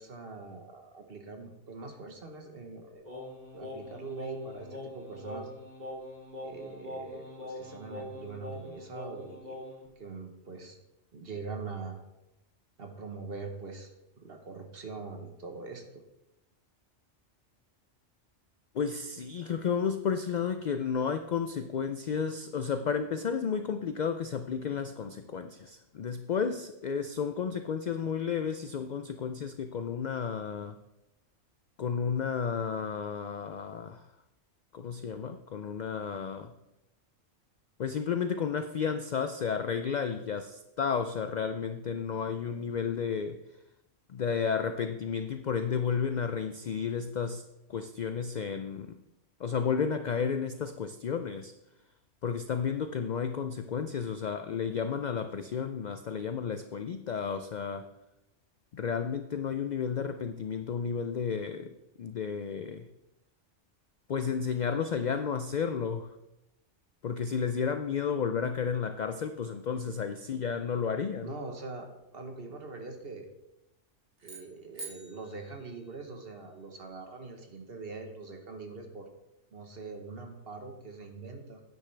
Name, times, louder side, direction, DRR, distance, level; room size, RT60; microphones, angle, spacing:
voice 1, 0.0-3.0 3.5-5.5 6.4-9.6 10.0-10.8 11.1-12.0 12.8-13.9 14.2-16.0 71.2-73.3 74.2-79.1 79.5-81.6, right 4 dB, 55° right, 4 dB, 1.4 m, -43 dB
Singing, 3.0-9.9, left 1 dB, 35° right, 2.3 m, -43 dB
voice 2, 18.7-30.8 31.8-34.1 34.7-36.5 37.8-43.4 44.1-47.4 47.7-49.0 49.4-51.5 52.2-57.9 58.7-62.9 64.1-66.2 67.0-71.3, left 6 dB, 60° left, 8 dB, 0.4 m, -32 dB
sound 1, 74.2-76.5, right 3 dB, 70° right, 2.0 m, -48 dB
9.7 x 9.5 x 3.4 m, 0.92 s
omnidirectional pair, 1.2 m